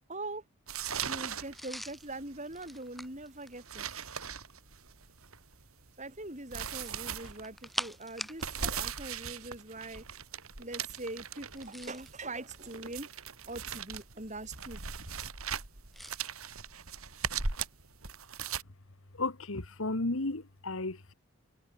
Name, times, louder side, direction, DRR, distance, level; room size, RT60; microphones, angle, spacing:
voice 1, 0.1-0.4 1.1-3.9 6.0-10.0 10.6-13.1 13.5-14.8, right 2 dB, 35° right, 5.4 m, -42 dB
sound 1, 0.7-18.6, right 6 dB, 85° right, 4.0 m, -39 dB
sound 2, 1.5-4.2 6.6-8.8 9.0-9.2 11.4-12.2 12.9-14.0 15.9-16.2, equal, ahead, 4.3 m, -44 dB
voice 2, 19.2-21.1, left 2 dB, 75° left, 1.7 m, -33 dB
head